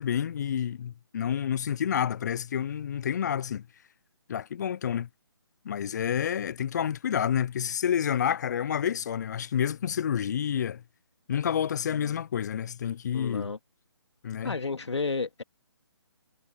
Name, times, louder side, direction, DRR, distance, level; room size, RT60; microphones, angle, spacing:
voice 1, 0.0-3.7 4.3-5.1 5.6-10.8 11.3-13.5 14.2-14.5, left 9 dB, 40° left, 0.4 m, -29 dB
voice 2, 13.1-13.6 14.4-15.4, left 4 dB, 80° left, 2.4 m, -32 dB
figure-of-eight pair, 150°, 14 cm